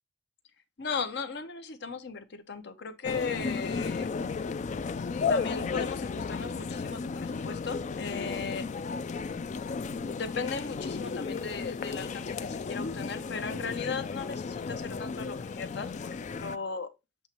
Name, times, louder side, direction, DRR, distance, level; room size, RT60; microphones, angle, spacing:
voice 1, 0.8-4.1 5.3-8.7 10.1-15.9 16.4-16.9, left 5 dB, 65° left, 0.8 m, -37 dB
sound 1, 3.0-16.6, left 5 dB, 40° left, 0.3 m, -34 dB
7.4 x 3.0 x 4.3 m
head